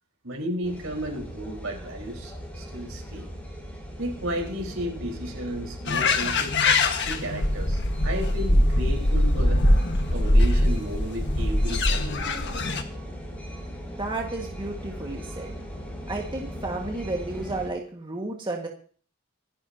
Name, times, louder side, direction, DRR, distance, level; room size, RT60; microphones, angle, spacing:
voice 1, 0.2-3.3 4.0-6.7 7.1-9.6 10.1-12.4, equal, 70° right, 2 dB, 4.4 m, -33 dB
sound 1, 0.6-17.7, equal, 5° left, 4.5 m, -38 dB
sound 2, 5.9-12.8, left 1 dB, 60° left, 1.5 m, -22 dB
voice 2, 14.0-15.6 16.1-18.7, right 2 dB, 25° right, 0 dB, 1.7 m, -32 dB
26.0 x 10.5 x 2.8 m, 0.43 s
head